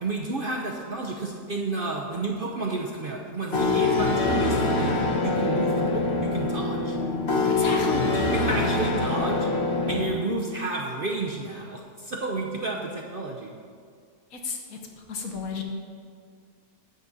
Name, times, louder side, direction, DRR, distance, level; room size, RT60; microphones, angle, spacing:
voice 1, 0.0-7.0 8.1-9.5 9.9-13.6, right 3 dB, 45° right, 0 dB, 0.7 m, -31 dB
sound 1, 3.5-10.1, left 3 dB, 45° left, 1.2 m, -24 dB
voice 2, 7.5-8.1 14.3-15.6, left 4 dB, 65° left, 2 dB, 1.5 m, -32 dB
10.5 x 4.1 x 7.3 m, 2.1 s
omnidirectional pair, 1.6 m